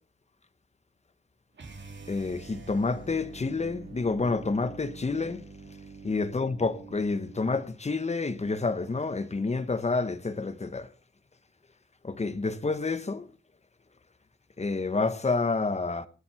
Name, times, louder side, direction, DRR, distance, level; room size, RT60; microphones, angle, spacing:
sound 1, 1.5-7.7, right 3 dB, 70° right, 3.8 m, -46 dB
voice 1, 2.1-5.4 6.0-10.9 12.0-13.3 14.6-16.1, left 3 dB, 35° left, 1.4 m, -29 dB
19.5 x 7.9 x 5.8 m
wide cardioid pair, 125°, 19 cm